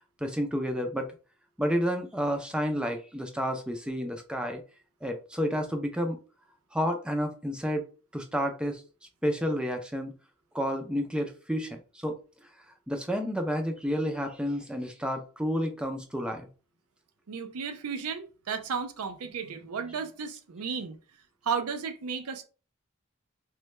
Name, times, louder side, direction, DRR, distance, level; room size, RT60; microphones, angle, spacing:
voice 1, 0.2-1.1 1.6-4.6 5.0-6.2 6.7-7.9 8.1-8.8 9.2-10.1 10.5-12.2 12.9-16.5, equal, 5° right, 0.4 m, -30 dB
voice 2, 17.3-21.0 21.4-22.4, right 6 dB, 85° right, 0.5 m, -34 dB
3.2 x 2.2 x 3.1 m
head